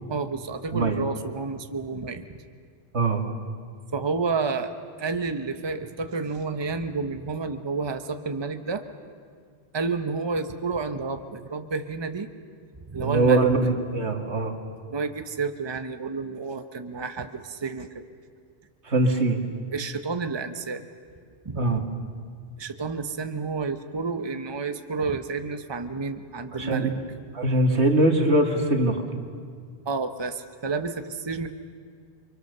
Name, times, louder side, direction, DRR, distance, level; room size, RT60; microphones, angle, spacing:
voice 1, 0.1-2.4 3.9-8.8 9.7-12.3 12.9-13.5 14.9-18.0 19.7-20.8 21.4-21.6 22.6-26.9 29.8-31.5, right 4 dB, 25° right, 8 dB, 0.9 m, -30 dB
voice 2, 13.0-14.5 18.9-19.4 21.5-21.8 26.5-27.0 27.3-29.0, right 2 dB, 90° right, 3 dB, 2.4 m, -22 dB
29.5 x 24.0 x 6.8 m, 2.1 s
omnidirectional pair, 1.1 m